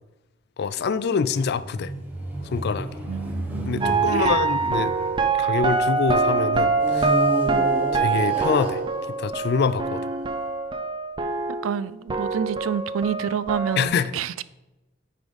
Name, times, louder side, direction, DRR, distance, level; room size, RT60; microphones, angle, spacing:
voice 1, 0.6-1.9 2.4-3.0 3.7-4.9 5.4-7.1 7.9-8.8 9.2-10.1 13.8-14.1, left 5 dB, 55° left, 0.4 m, -25 dB
sound 1, 1.3-6.0 6.7-10.2, right 1 dB, 10° right, 1.1 m, -32 dB
voice 2, 3.1-4.3 7.4-7.7 11.6-14.4, right 7 dB, 85° right, 0.4 m, -29 dB
sound 2, 3.8-11.8 12.1-13.9, right 4 dB, 25° right, 0.6 m, -24 dB
9.4 x 3.8 x 5.1 m
head